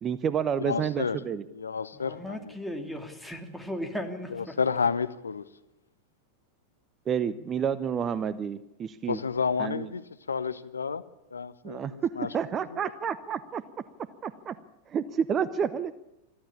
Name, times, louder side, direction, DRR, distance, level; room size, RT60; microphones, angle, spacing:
voice 1, 0.0-1.4 7.1-9.2 9.6-9.9 11.6-13.6 14.2-14.6 14.9-15.9, right 7 dB, 25° right, 17 dB, 0.8 m, -30 dB
voice 2, 0.6-1.2 1.5-2.5 4.3-5.4 9.1-10.0 10.3-11.0 11.3-12.3 12.8-12.9, left 5 dB, 75° left, 15 dB, 0.7 m, -30 dB
voice 3, 1.9-4.5, equal, ahead, 7 dB, 2.9 m, -36 dB
22.5 x 14.5 x 8.6 m, 0.94 s
figure-of-eight pair, 90°, 0 cm